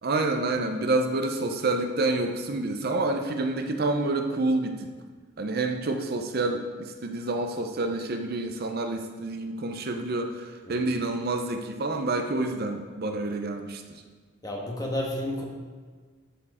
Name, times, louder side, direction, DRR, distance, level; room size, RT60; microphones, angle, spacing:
voice 1, 0.0-4.9 5.4-13.8, right 2 dB, 50° right, 5 dB, 0.6 m, -28 dB
voice 2, 14.4-15.4, left 1 dB, 20° left, -1 dB, 1.3 m, -30 dB
13.0 x 4.5 x 4.9 m, 1.5 s
head